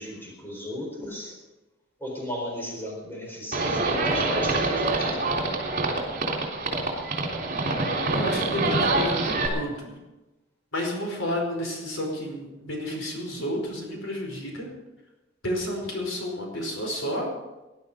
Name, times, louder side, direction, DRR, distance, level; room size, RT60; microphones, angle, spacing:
voice 1, 0.0-1.4 2.0-5.4, equal, 10° left, -1 dB, 4.3 m, -36 dB
Livestock farm animals working animals, 3.5-9.5, right 2 dB, 45° right, 3.5 m, -26 dB
voice 2, 8.1-10.0 10.7-14.7 15.4-17.3, equal, 75° left, 1 dB, 5.0 m, -31 dB
19.5 x 11.5 x 5.2 m, 1.1 s
head